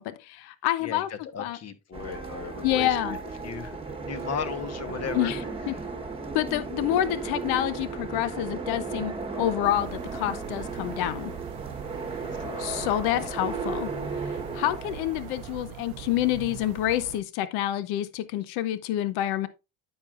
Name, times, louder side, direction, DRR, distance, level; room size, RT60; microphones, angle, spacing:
voice 1, 0.0-1.1 1.4-1.6 2.6-3.2 5.1-5.4 5.7-5.8 6.3-11.3 12.6-19.5, left 13 dB, 85° left, 0.9 m, -28 dB
voice 2, 0.8-5.4 12.4-12.8 13.2-13.3, left 7 dB, 45° left, 1.2 m, -37 dB
sound 1, 1.9-15.7, right 4 dB, 15° right, 1.2 m, -35 dB
sound 2, 9.6-17.2, right 13 dB, 80° right, 0.7 m, -43 dB
9.6 x 7.5 x 2.5 m
cardioid pair, 120°, 37 cm